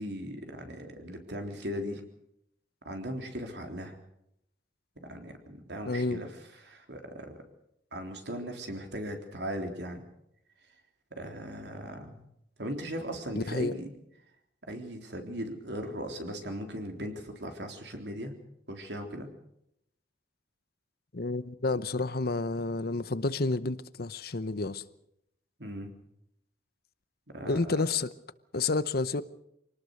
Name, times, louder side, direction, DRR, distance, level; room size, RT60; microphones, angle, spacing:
voice 1, 0.0-2.0 2.8-4.0 5.0-6.3 6.6-7.4 7.9-10.0 11.1-12.2 12.6-13.9 14.7-18.3 18.7-19.3 25.6-25.9 27.3-27.8, equal, 70° right, 3.6 m, -38 dB
voice 2, 5.8-6.2 13.3-13.7 21.1-24.8 27.5-28.1 28.5-29.2, left 3 dB, 60° left, 0.8 m, -30 dB
25.0 x 19.0 x 6.6 m
head